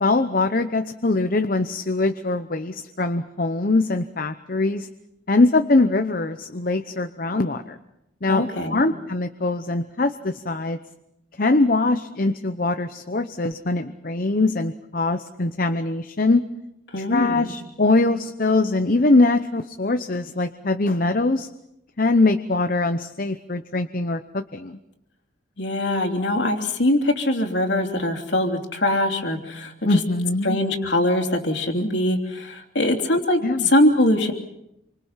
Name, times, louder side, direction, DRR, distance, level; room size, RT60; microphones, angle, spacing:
voice 1, 0.0-4.9 5.3-7.7 8.2-10.8 11.4-16.4 17.0-21.5 22.0-24.8 29.8-30.6 33.4-33.7, left 2 dB, 45° left, 8 dB, 0.8 m, -22 dB
voice 2, 8.3-8.8 16.9-17.5 25.6-30.0 30.4-34.3, left 1 dB, 60° left, 4 dB, 3.2 m, -22 dB
28.0 x 25.0 x 5.8 m, 0.85 s
head